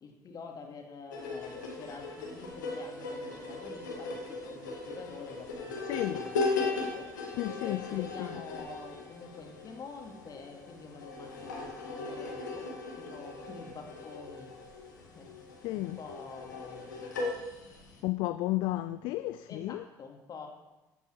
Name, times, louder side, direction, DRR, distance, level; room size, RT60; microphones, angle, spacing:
voice 1, 0.0-7.1 7.6-12.7 12.9-14.6 15.0-15.3 15.7-18.0 19.5-20.5, left 5 dB, 40° left, 2.4 m, -47 dB
sound 1, 1.1-18.0, left 3 dB, 75° left, 2.1 m, -38 dB
voice 2, 5.9-6.2 7.4-8.4 15.6-16.0 18.0-19.8, left 17 dB, 55° left, 0.4 m, -33 dB
14.5 x 8.6 x 4.7 m
figure-of-eight pair, 55°, 10 cm